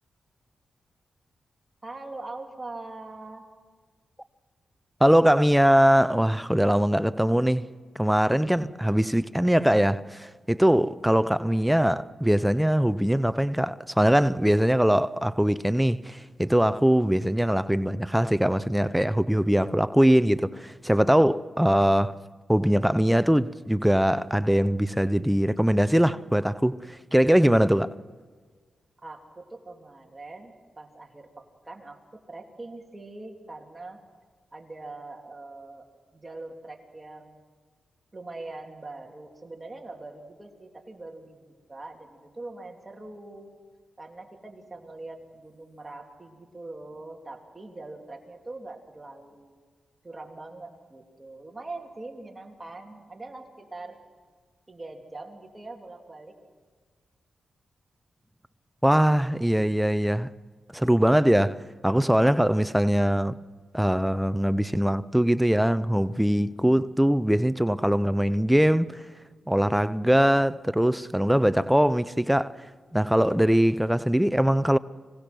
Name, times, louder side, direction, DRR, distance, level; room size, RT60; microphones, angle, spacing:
voice 1, 1.8-3.5 29.0-34.0 34.5-35.9 36.1-37.4 38.1-43.5 44.0-49.6 50.0-54.0 54.7-56.4, right 2 dB, 25° right, 3.1 m, -42 dB
voice 2, 5.0-7.7 8.0-22.1 22.5-27.9 58.8-60.3 60.7-61.6 61.8-63.4 63.7-69.0 69.5-72.5 72.9-74.8, equal, 5° right, 0.6 m, -22 dB
25.5 x 18.5 x 6.1 m
cardioid pair, 80°, 0 cm